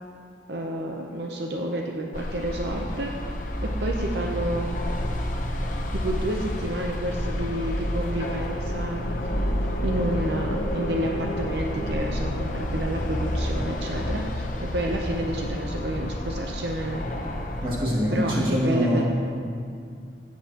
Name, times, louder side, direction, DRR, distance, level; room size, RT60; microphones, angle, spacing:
voice 1, 0.5-3.2 3.6-4.7 5.9-9.0 9.8-17.0 18.1-19.0, right 1 dB, 75° right, 1 dB, 0.7 m, -30 dB
sound 1, 2.1-17.7, left 1 dB, 45° left, 0.8 m, -30 dB
sound 2, 7.1-14.2, left 1 dB, 85° left, 0.8 m, -36 dB
voice 2, 17.6-19.0, equal, 30° right, -6 dB, 2.3 m, -24 dB
15.5 x 8.5 x 2.9 m, 2.2 s
head